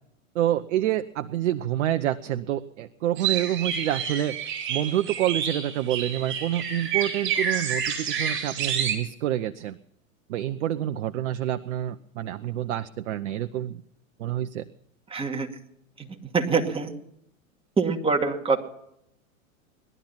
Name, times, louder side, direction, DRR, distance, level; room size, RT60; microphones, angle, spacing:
voice 1, 0.3-4.4 4.7-9.8 10.3-13.8 14.2-14.6, right 12 dB, 60° right, 10 dB, 0.9 m, -27 dB
sound 1, 3.2-9.0, right 7 dB, 30° right, 5.1 m, -29 dB
voice 2, 15.1-15.5 16.3-16.9 17.8-18.6, right 4 dB, 15° right, 2 dB, 2.3 m, -24 dB
19.5 x 12.0 x 5.8 m, 0.76 s
hypercardioid pair, 100°, 41 cm